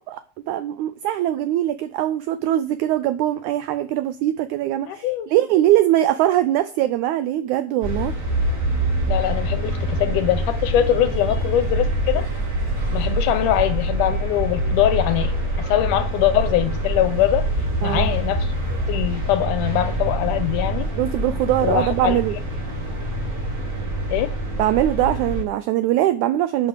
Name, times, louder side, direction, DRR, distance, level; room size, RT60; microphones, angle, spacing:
voice 1, 0.5-8.1 17.8-18.1 21.0-22.4 24.6-26.7, right 13 dB, 85° right, 1.7 m, -21 dB
voice 2, 4.9-5.3 9.1-12.3 12.9-15.3 15.6-17.5 17.8-18.5 18.9-20.9 21.6-22.2 24.1-24.3, left 12 dB, 80° left, 2.0 m, -22 dB
sound 1, 7.8-25.4, right 1 dB, 45° right, 4.6 m, -25 dB
10.5 x 5.3 x 6.4 m
omnidirectional pair, 4.0 m